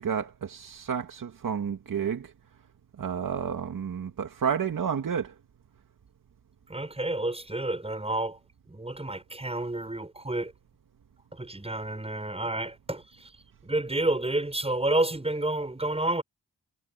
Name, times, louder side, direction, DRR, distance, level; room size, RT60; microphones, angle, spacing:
voice 1, 0.0-2.3 3.0-5.3, right 7 dB, 70° right, 2.5 m, -30 dB
voice 2, 6.7-8.4 8.7-10.5 11.3-13.3 13.6-16.2, right 2 dB, 15° right, 7.1 m, -30 dB
wide cardioid pair, 90°, 34 cm